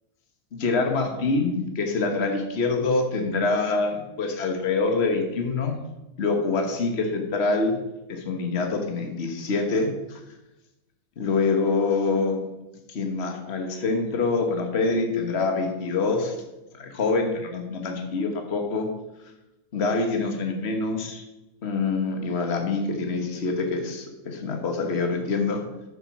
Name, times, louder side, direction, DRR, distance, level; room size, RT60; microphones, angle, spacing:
voice 1, 0.5-5.8 6.2-7.8 8.1-10.2 11.2-12.4 12.9-16.4 16.7-18.9 19.7-21.2 21.6-25.6, left 3 dB, 40° left, 4 dB, 1.6 m, -25 dB
9.2 x 7.2 x 6.1 m, 0.97 s
omnidirectional pair, 1.7 m